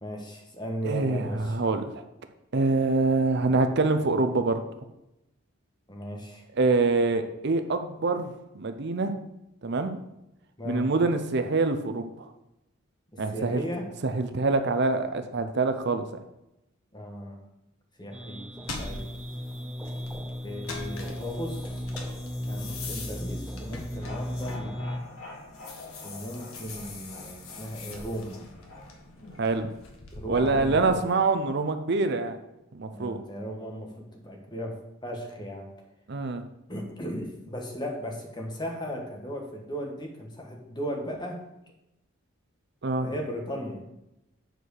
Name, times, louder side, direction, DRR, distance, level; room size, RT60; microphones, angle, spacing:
voice 1, 0.0-1.6 5.9-6.4 10.6-10.9 13.1-13.9 16.9-17.4 18.0-18.5 18.8-19.0 20.4-21.9 22.5-24.7 26.0-28.4 30.1-31.0 32.9-35.7 36.7-41.4 43.0-43.9, equal, 20° left, 1 dB, 1.5 m, -36 dB
voice 2, 0.8-2.0 2.5-4.6 6.6-8.3 8.5-9.2 9.6-9.9 10.7-12.3 13.2-13.6 14.0-16.0 29.4-29.7 30.3-32.4 32.7-33.2 36.1-36.4 42.8-43.1, right 3 dB, 55° right, 8 dB, 0.6 m, -25 dB
sound 1, 18.1-25.0, equal, 5° right, 0.6 m, -36 dB
sound 2, 18.6-25.1 25.4-30.9, left 3 dB, 90° left, 1.6 m, -43 dB
sound 3, 23.7-29.8, left 2 dB, 65° left, 2.5 m, -46 dB
8.1 x 4.7 x 6.4 m, 0.88 s
head